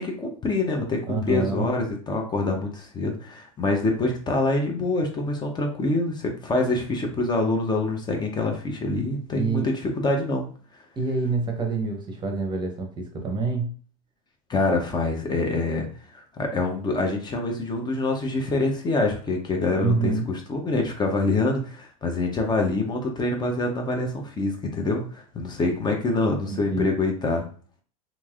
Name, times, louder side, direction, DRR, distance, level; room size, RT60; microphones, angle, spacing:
voice 1, 0.0-10.5 14.5-15.9 16.1-27.5, left 2 dB, 25° left, 2 dB, 0.7 m, -25 dB
voice 2, 1.1-1.7 9.3-9.7 11.0-13.8 19.8-20.3 26.5-26.9, right 4 dB, 25° right, 3 dB, 0.8 m, -26 dB
3.1 x 2.6 x 2.4 m, 0.42 s
hypercardioid pair, 90°, 19 cm